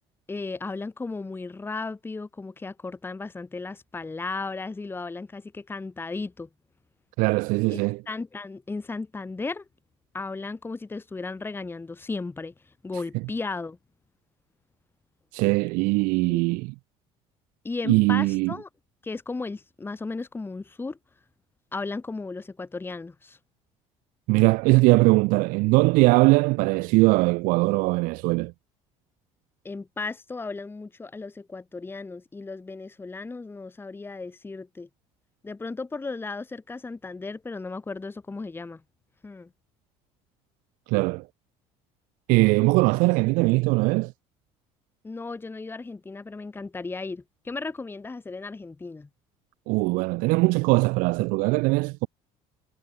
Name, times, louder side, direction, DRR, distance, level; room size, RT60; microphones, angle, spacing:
voice 1, 0.3-6.5 7.7-9.7 10.1-13.8 16.2-16.4 17.6-18.7 19.0-21.0 21.7-23.4 29.6-34.9 35.4-38.8 39.2-39.5 45.0-49.1, left 3 dB, 15° left, 0.9 m, -35 dB
voice 2, 7.2-8.0 15.3-16.7 17.9-18.5 24.3-28.5 40.9-41.3 42.3-44.1 49.7-52.1, right 25 dB, 75° right, 0.5 m, -21 dB
supercardioid pair, 85°, 14 cm